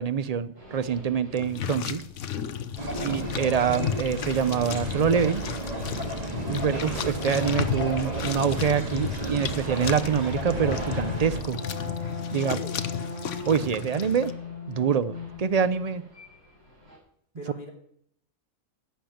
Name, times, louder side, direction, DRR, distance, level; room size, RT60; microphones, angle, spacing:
voice 1, 0.0-2.0 3.0-5.4 6.5-11.6 12.3-12.6 13.5-14.3 14.7-16.0, right 7 dB, 75° right, 13 dB, 0.3 m, -25 dB
sound 1, 0.6-1.9 3.1-5.6 5.9-6.3 6.7-17.0, left 4 dB, 60° right, 5.2 m, -40 dB
sound 2, 1.3-14.3, left 8 dB, 65° left, 1.1 m, -34 dB
voice 2, 2.7-3.1 6.3-6.7 12.3-12.8 17.3-17.7, left 1 dB, 35° left, 0 dB, 3.1 m, -43 dB
sound 3, 2.8-11.4, right 1 dB, 30° right, 2.0 m, -33 dB
11.5 x 7.4 x 9.2 m, 0.69 s
omnidirectional pair, 1.5 m